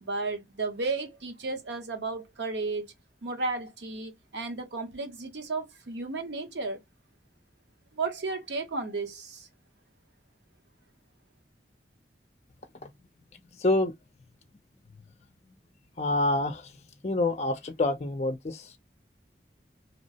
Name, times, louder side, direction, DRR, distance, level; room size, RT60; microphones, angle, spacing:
voice 1, 0.0-2.9 3.2-6.8 7.9-9.5, right 3 dB, 85° right, 0.8 m, -33 dB
voice 2, 13.5-13.9 16.0-16.8 17.0-18.8, left 2 dB, 40° left, 0.4 m, -27 dB
2.9 x 2.0 x 2.7 m
head